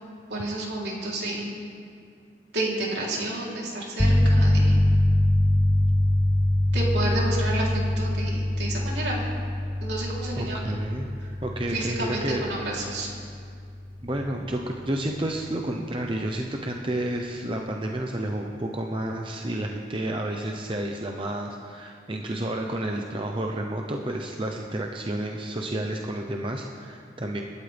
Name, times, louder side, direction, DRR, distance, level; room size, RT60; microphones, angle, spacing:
voice 1, 0.3-1.5 2.5-4.9 6.7-9.2 9.8-10.8 11.2-11.3 11.7-13.1, right 2 dB, 75° right, -4 dB, 3.5 m, -30 dB
sound 1, 4.0-14.5, left 1 dB, 5° left, 0.4 m, -24 dB
voice 2, 10.4-11.1 11.4-12.4 12.8-13.0 14.0-27.4, right 1 dB, 30° right, 1 dB, 0.8 m, -30 dB
27.0 x 12.5 x 3.5 m, 2.3 s
head